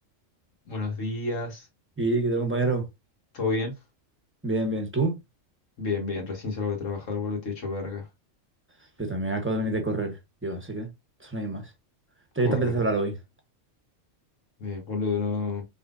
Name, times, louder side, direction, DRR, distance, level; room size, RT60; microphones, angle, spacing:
voice 1, 0.7-1.6 3.3-3.7 5.8-8.0 12.4-12.7 14.6-15.6, left 4 dB, 70° left, 2.1 m, -30 dB
voice 2, 2.0-2.9 4.4-5.2 9.0-10.2 10.4-10.9 11.2-11.6 12.4-13.2, right 2 dB, 10° right, 1.1 m, -26 dB
5.5 x 3.7 x 2.6 m
omnidirectional pair, 1.4 m